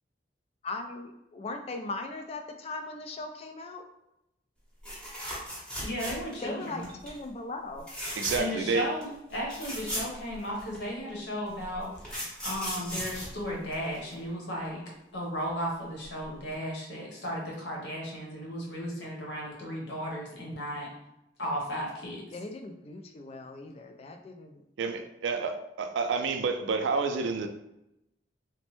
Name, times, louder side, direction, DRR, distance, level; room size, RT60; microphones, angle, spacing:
voice 1, 0.6-3.8 6.4-7.9 22.3-24.6, left 2 dB, 35° left, 6 dB, 0.3 m, -39 dB
sound 1, 4.8-6.5 6.8-7.1 7.8-8.6 9.0-9.1 9.3-10.8 11.6-14.1 16.0-16.2 16.5-16.6, equal, 5° left, 0.8 m, -37 dB
voice 2, 5.8-6.9 8.3-14.8 15.1-20.9 21.4-22.2, equal, 75° left, -3 dB, 1.0 m, -35 dB
voice 3, 8.2-8.9 24.8-27.5, right 4 dB, 85° right, 6 dB, 0.3 m, -29 dB
3.0 x 2.1 x 3.0 m, 0.86 s
head